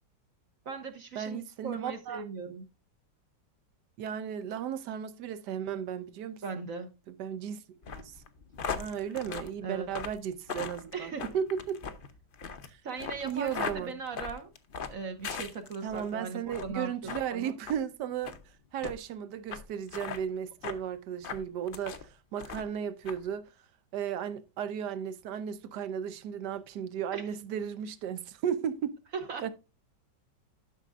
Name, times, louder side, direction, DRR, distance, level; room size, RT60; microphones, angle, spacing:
voice 1, 0.6-2.6 6.4-6.9 9.6-9.9 10.9-11.3 12.8-14.5 14.9-16.9 17.3-17.5 27.1-27.2 29.3-29.5, right 4 dB, 55° right, 1.3 m, -38 dB
voice 2, 1.1-2.2 4.0-6.6 7.1-7.6 7.9-8.1 8.7-11.8 12.7-12.8 13.2-13.9 15.8-18.4 18.7-23.5 23.9-29.0 29.4-29.5, right 8 dB, 75° right, 1.4 m, -35 dB
sound 1, 7.8-16.1 16.5-16.8 17.1-17.3 17.6-17.8 18.2-18.4 18.8-18.9 19.5-19.6 19.9-20.2 20.6-20.8 21.2-22.0 22.4-22.8 23.1-23.2, left 6 dB, 50° left, 0.6 m, -38 dB
12.0 x 6.2 x 2.5 m
omnidirectional pair, 1.9 m